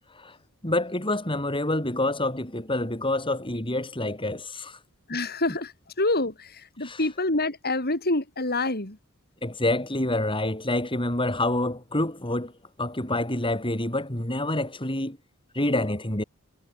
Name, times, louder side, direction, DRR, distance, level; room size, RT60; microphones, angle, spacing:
voice 1, 0.6-4.8 6.8-7.0 9.4-12.5 12.8-15.2 15.5-16.2, left 1 dB, 25° left, 6.0 m, -27 dB
voice 2, 5.1-9.0, left 2 dB, 45° left, 4.5 m, -27 dB
head